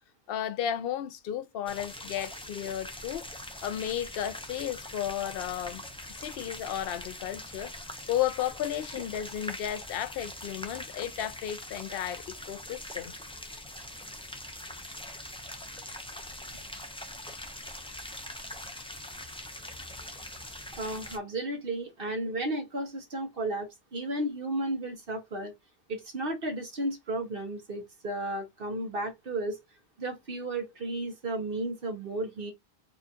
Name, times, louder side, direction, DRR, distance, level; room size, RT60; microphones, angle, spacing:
voice 1, 0.3-3.3 3.6-5.8 6.1-7.7 8.1-13.1, left 11 dB, 60° left, 0.7 m, -33 dB
sound 1, 1.7-21.2, left 1 dB, 10° left, 0.3 m, -42 dB
voice 2, 20.8-25.5 25.9-29.6 30.0-32.5, right 1 dB, 55° right, 1.1 m, -33 dB
4.3 x 2.4 x 2.7 m
omnidirectional pair, 1.2 m